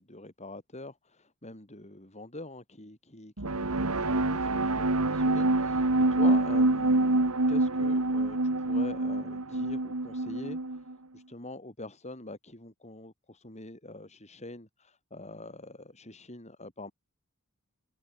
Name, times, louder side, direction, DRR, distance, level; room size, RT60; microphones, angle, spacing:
voice 1, 0.0-10.8 11.1-16.9, left 2 dB, 30° left, 6.9 m, -44 dB
sound 1, 3.4-10.9, right 2 dB, 85° right, 1.9 m, -26 dB
head